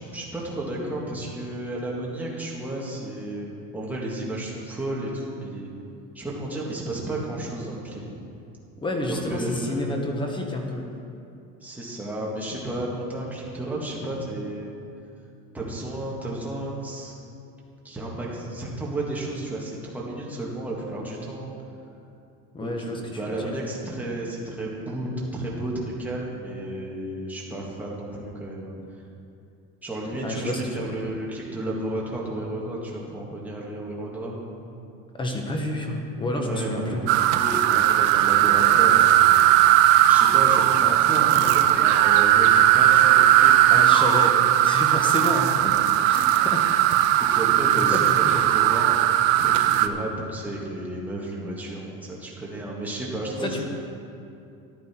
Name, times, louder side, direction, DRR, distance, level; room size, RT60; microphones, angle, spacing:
voice 1, 0.1-5.7 6.1-8.0 9.1-9.9 11.6-14.7 15.5-17.1 17.8-21.5 22.6-28.7 29.8-34.4 36.4-39.7 40.1-43.7 46.2-46.5 47.3-48.0 48.5-48.8 49.4-53.6, right 1 dB, 5° right, -5 dB, 1.8 m, -32 dB
voice 2, 8.8-10.9 22.5-23.6 30.1-31.0 35.1-37.1 43.7-46.7 47.2-47.4 47.7-48.4 53.4-53.6, left 1 dB, 15° left, 2 dB, 1.1 m, -30 dB
sound 1, 37.1-49.9, right 12 dB, 70° right, 0.7 m, -18 dB
14.0 x 10.5 x 4.5 m, 2.6 s
cardioid pair, 160°, 36 cm